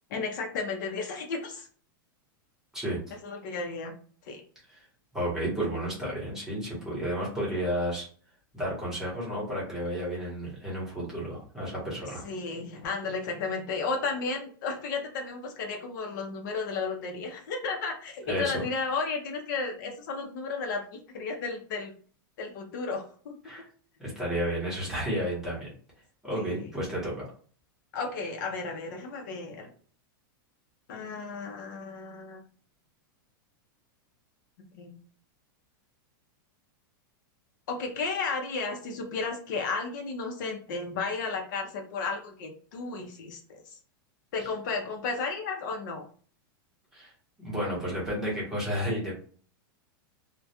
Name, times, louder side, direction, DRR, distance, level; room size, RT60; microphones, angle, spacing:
voice 1, 0.1-1.7 3.2-3.9 4.3-4.4 12.2-20.8 21.1-21.9 22.4-23.3 26.3-26.7 27.9-29.7 30.9-32.4 34.7-34.9 37.7-43.8 44.3-46.1, left 4 dB, 60° left, 2 dB, 0.7 m, -33 dB
voice 2, 5.1-8.1 8.5-12.2 18.3-18.6 23.4-23.7 24.0-25.7 26.2-27.2 46.9-47.1 47.4-49.2, equal, 5° right, -6 dB, 1.0 m, -32 dB
2.3 x 2.2 x 2.7 m, 0.43 s
supercardioid pair, 155°, 12 cm